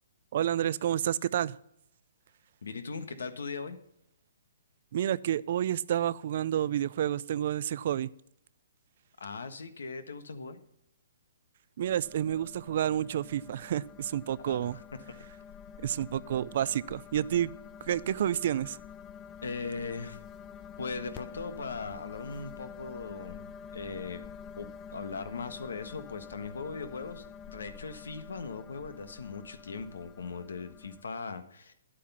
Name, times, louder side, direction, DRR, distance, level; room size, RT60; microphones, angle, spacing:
voice 1, 0.3-1.5 4.9-8.1 11.8-14.8 15.8-17.5 17.9-18.8, right 10 dB, 50° right, 20 dB, 0.4 m, -29 dB
voice 2, 2.6-3.8 9.2-10.6 14.4-14.8 19.4-20.2 20.8-23.5 23.7-24.2 24.6-31.7, left 4 dB, 90° left, 10 dB, 1.4 m, -39 dB
sound 1, 11.8-31.0, left 7 dB, 15° left, 0.4 m, -48 dB
10.5 x 8.4 x 5.6 m, 0.75 s
hypercardioid pair, 160°, 0 cm